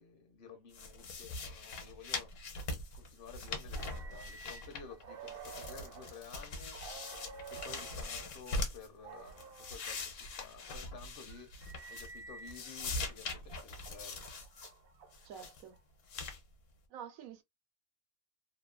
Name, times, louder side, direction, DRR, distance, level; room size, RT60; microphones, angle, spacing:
voice 1, 0.0-2.6 2.9-7.0 7.5-14.2, left 5 dB, 55° left, 0.7 m, -53 dB
sound 1, 0.7-5.0 5.3-8.9 9.3-12.2 12.5-14.7 15.1-15.6 16.1-16.4, left 3 dB, 70° left, 1.1 m, -42 dB
sound 2, 3.8-8.3 9.0-9.8 10.5-12.9 13.4-15.8, right 5 dB, 60° right, 0.6 m, -51 dB
voice 2, 15.2-15.8 16.9-17.4, right 8 dB, 85° right, 1.0 m, -48 dB
2.8 x 2.2 x 2.3 m
omnidirectional pair, 1.4 m